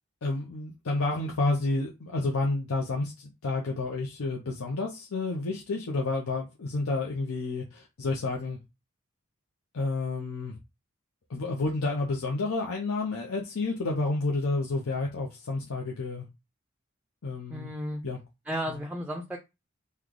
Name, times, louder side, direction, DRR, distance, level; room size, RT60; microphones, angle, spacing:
voice 1, 0.2-8.6 9.7-10.6 11.3-16.3 17.2-17.7 18.0-18.2 18.7-18.8, left 3 dB, 90° left, 0.6 m, -30 dB
voice 2, 17.5-18.0 18.5-19.4, equal, 5° right, 0.4 m, -33 dB
3.1 x 2.2 x 3.7 m
head